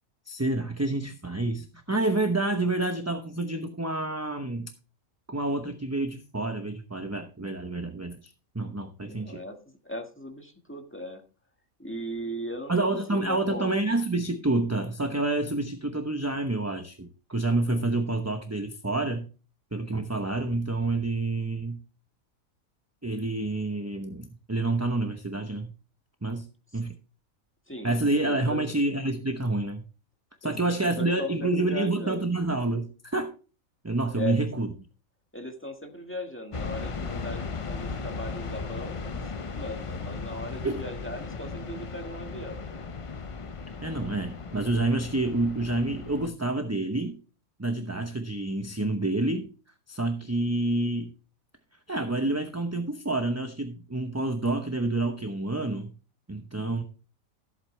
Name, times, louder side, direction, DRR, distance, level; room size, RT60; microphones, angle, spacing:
voice 1, 0.3-4.7 5.3-9.4 12.7-19.3 19.7-21.8 23.0-25.7 26.2-26.5 26.7-26.9 27.8-29.8 30.4-33.3 33.8-34.7 40.6-40.8 43.8-47.2 47.6-49.5 49.9-51.1 51.9-55.9 56.3-56.8, right 2 dB, 15° right, 6 dB, 0.7 m, -28 dB
voice 2, 9.0-11.2 11.8-12.7 13.1-13.7 27.7-28.6 30.4-32.2 34.1-34.5 35.3-39.2 39.6-42.9, equal, 10° left, 4 dB, 1.6 m, -38 dB
sound 1, 36.5-46.3, left 4 dB, 35° left, 0.5 m, -36 dB
14.5 x 8.2 x 3.3 m, 0.35 s
omnidirectional pair, 1.4 m